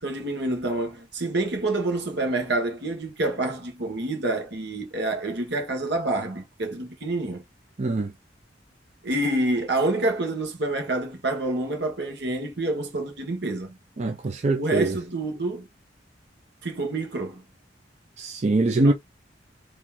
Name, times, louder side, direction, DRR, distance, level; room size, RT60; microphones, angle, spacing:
voice 1, 0.0-7.4 9.0-13.8 14.5-15.7 16.6-17.4 18.7-18.9, right 2 dB, 65° right, 1.4 m, -27 dB
voice 2, 7.8-8.1 14.0-15.0 18.2-18.9, right 2 dB, 40° right, 0.5 m, -23 dB
3.8 x 3.0 x 2.9 m
head